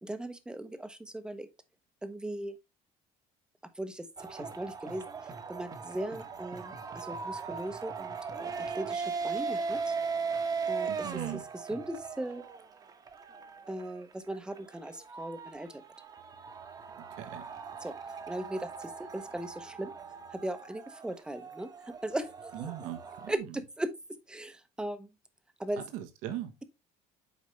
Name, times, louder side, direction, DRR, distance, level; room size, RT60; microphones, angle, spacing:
voice 1, 0.0-1.5 2.0-2.6 3.6-10.0 10.7-11.4 11.7-12.4 13.7-15.8 17.8-20.0 20.3-22.7 23.3-25.1 25.6-25.8, right 1 dB, 5° right, 0.8 m, -38 dB
sound 1, 4.2-23.4, right 5 dB, 30° right, 1.1 m, -39 dB
voice 2, 10.9-11.4 17.0-17.5 22.5-23.4 25.8-26.6, right 12 dB, 85° right, 1.3 m, -39 dB
8.4 x 5.0 x 3.2 m
cardioid pair, 140°, 13 cm